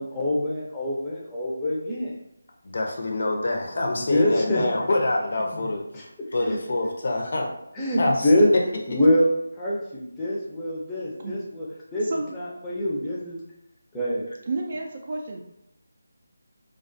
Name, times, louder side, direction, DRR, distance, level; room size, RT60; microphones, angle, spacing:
voice 1, 0.0-2.1 4.1-4.6 5.9-6.0 7.8-8.5 8.9-9.3 9.6-11.7 11.9-13.4 13.9-14.3, left 1 dB, 10° left, -6 dB, 0.5 m, -24 dB
voice 2, 2.6-5.8 6.3-7.5 8.0-8.6, left 2 dB, 55° left, 0 dB, 0.6 m, -26 dB
voice 3, 12.0-12.3 14.5-15.4, right 3 dB, 45° right, 1 dB, 0.3 m, -31 dB
2.3 x 2.2 x 2.6 m, 0.82 s
figure-of-eight pair, 165°, 0 cm